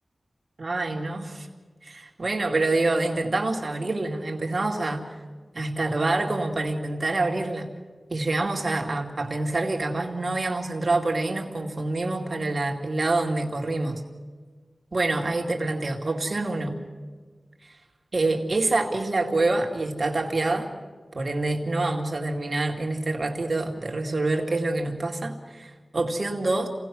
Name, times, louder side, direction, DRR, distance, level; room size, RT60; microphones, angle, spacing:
voice 1, 0.6-1.5 1.8-5.0 5.5-7.7 8.1-13.9 14.9-16.8 18.1-20.7 21.1-26.7, right 2 dB, 55° right, 3 dB, 2.4 m, -26 dB
27.0 x 18.0 x 6.2 m, 1.4 s
cardioid pair, 50°, 0 cm